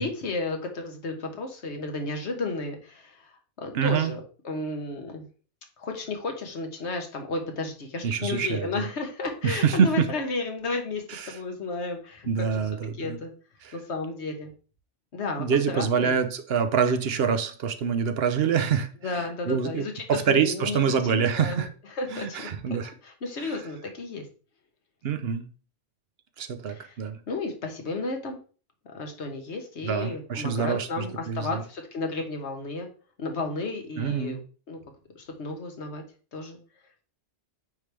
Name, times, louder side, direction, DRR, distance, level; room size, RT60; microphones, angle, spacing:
voice 1, 0.0-5.3 5.8-12.3 13.0-13.3 13.7-14.5 15.1-16.2 19.0-21.7 21.9-22.5 23.0-24.3 26.7-26.9 27.3-28.4 28.8-32.9 33.2-34.4 34.7-34.8 35.1-36.0 36.3-36.6, left 3 dB, 75° left, 1.5 m, -33 dB
voice 2, 3.7-4.1 8.0-8.9 9.4-10.1 11.1-11.4 12.3-13.2 13.6-13.7 15.4-18.9 19.5-21.7 22.1-22.9 23.4-23.6 25.0-25.4 26.4-27.2 29.8-31.6 34.0-34.4, right 7 dB, 65° right, 0.9 m, -26 dB
9.1 x 3.2 x 3.3 m
omnidirectional pair, 1.2 m